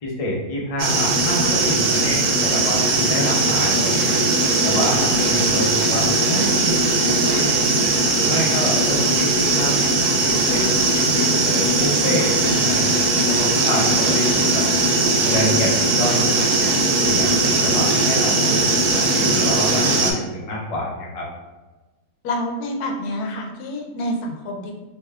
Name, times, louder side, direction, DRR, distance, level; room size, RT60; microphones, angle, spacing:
voice 1, 0.0-4.2 4.6-7.6 8.2-10.6 10.9-14.7 15.2-16.7 17.0-21.3, equal, 50° left, -3 dB, 0.4 m, -28 dB
sound 1, 0.8-20.1, right 2 dB, 90° right, 1.2 m, -19 dB
voice 2, 22.2-24.7, left 1 dB, 90° left, 1 dB, 1.1 m, -27 dB
2.9 x 2.2 x 3.3 m, 1.2 s
omnidirectional pair, 1.6 m